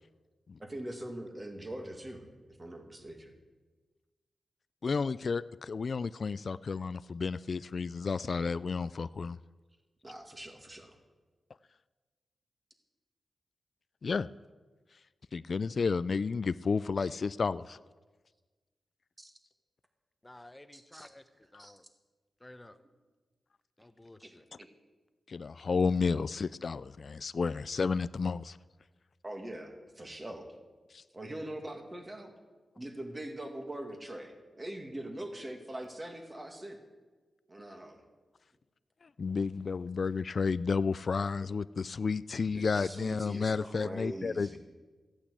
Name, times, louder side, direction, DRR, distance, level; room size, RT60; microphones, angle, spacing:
voice 1, 0.6-2.2 2.6-3.3 10.0-11.0 19.2-19.3 20.7-21.1 21.6-21.8 24.2-24.3 24.6-24.7 29.2-30.5 31.1-32.3 32.8-36.8 37.5-38.0 42.5-44.6, right 1 dB, 25° right, 4 dB, 2.3 m, -42 dB
voice 2, 4.8-9.4 14.0-14.3 15.3-17.8 21.5-21.7 25.3-28.6 30.9-31.0 39.0-44.6, left 5 dB, 55° left, 16 dB, 0.3 m, -32 dB
voice 3, 20.2-21.2 21.5-21.8 22.4-22.8 23.8-24.4, left 1 dB, 15° left, 10 dB, 0.9 m, -53 dB
14.5 x 8.9 x 8.3 m, 1.3 s
wide cardioid pair, 90°, 0 cm